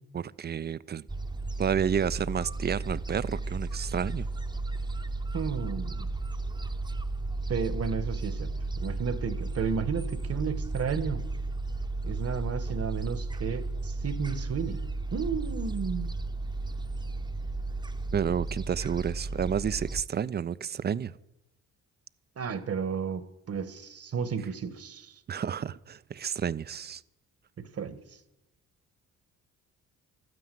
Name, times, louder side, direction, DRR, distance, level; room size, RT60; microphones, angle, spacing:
voice 1, 0.1-1.0 1.6-4.3 18.1-21.1 25.3-27.0, right 8 dB, 30° right, 0.4 m, -30 dB
Gull seagull, 1.1-20.0, right 2 dB, 15° right, 0.8 m, -34 dB
voice 2, 5.3-6.1 7.5-11.2 12.0-14.8 15.1-16.1 22.4-25.1 27.6-28.0, right 6 dB, 50° right, 1.2 m, -33 dB
12.5 x 9.5 x 9.1 m
cardioid pair, 85°, 32 cm